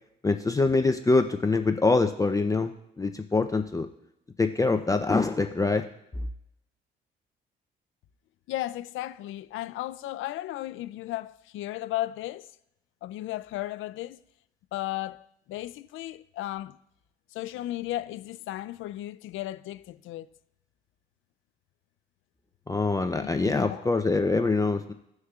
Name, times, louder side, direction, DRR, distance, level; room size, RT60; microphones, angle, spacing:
voice 1, 0.2-3.9 4.4-5.8 22.7-24.9, left 3 dB, 15° left, 0.6 m, -24 dB
voice 2, 8.5-12.5 13.0-14.2 14.7-16.8 17.3-20.3 23.2-23.9, left 15 dB, 85° left, 0.4 m, -35 dB
16.5 x 6.4 x 2.4 m
cardioid pair, 90°, 20 cm